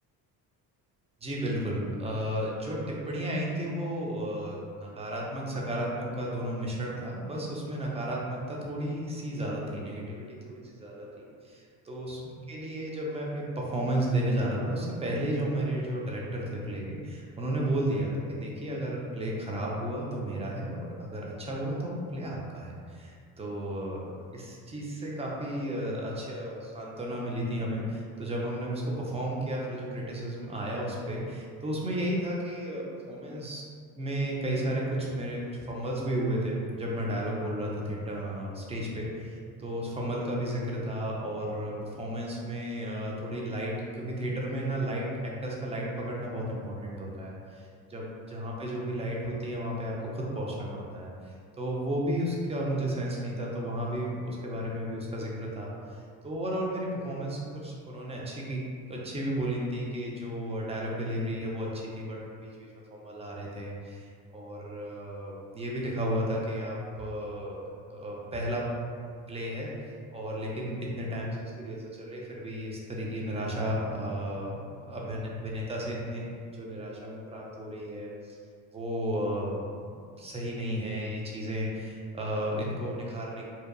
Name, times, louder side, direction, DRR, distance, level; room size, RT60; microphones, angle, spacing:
voice 1, 1.2-8.2 8.5-12.2 12.5-33.6 34.0-41.7 42.0-56.0 56.2-58.6 58.9-68.7 69.3-78.4 78.7-79.9 80.2-83.5, right 1 dB, 15° right, -3 dB, 0.5 m, -33 dB
2.8 x 2.3 x 2.3 m, 2.2 s
supercardioid pair, 75°, 39 cm